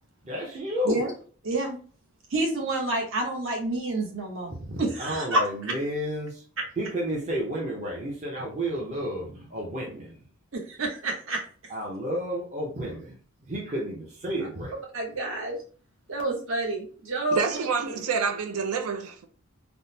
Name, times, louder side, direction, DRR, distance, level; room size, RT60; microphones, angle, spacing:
voice 1, 0.2-1.0 4.7-6.4 6.8-10.2 11.7-13.2 13.5-14.7, equal, 30° right, 0.6 m, -31 dB
voice 2, 1.4-1.8 2.3-4.5 4.8-5.4 6.6-6.7 10.5-11.4 14.9-15.6 16.1-17.4, right 2 dB, 65° right, 0.9 m, -28 dB
voice 3, 17.3-19.3, right 5 dB, 90° right, 0.5 m, -28 dB
3.5 x 2.0 x 2.7 m
head